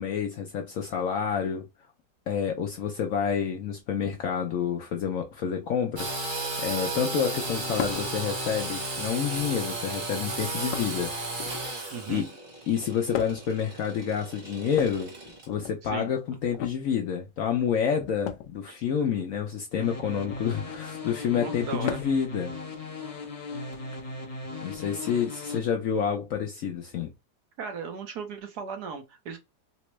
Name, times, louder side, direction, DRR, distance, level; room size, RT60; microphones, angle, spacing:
voice 1, 0.0-1.7 2.3-11.1 12.1-12.3 12.7-15.1 15.5-22.5 24.6-27.1, left 7 dB, 65° left, 0.8 m, -28 dB
Engine / Sawing, 6.0-15.5, right 2 dB, 35° right, 0.9 m, -34 dB
sound 1, 7.8-8.1 9.2-9.7 10.7-11.8 13.1-13.6 14.7-15.8 16.5-16.8 18.2-18.5 20.1-20.5 21.8-22.3 23.7-23.8 25.1-25.2, left 10 dB, 85° left, 1.2 m, -36 dB
voice 2, 11.9-12.3 15.8-16.1 18.7-18.8 21.3-22.0 27.6-29.4, right 5 dB, 70° right, 1.4 m, -37 dB
sound 2, 19.8-25.6, left 2 dB, 35° left, 0.6 m, -38 dB
4.2 x 2.1 x 3.0 m
omnidirectional pair, 1.9 m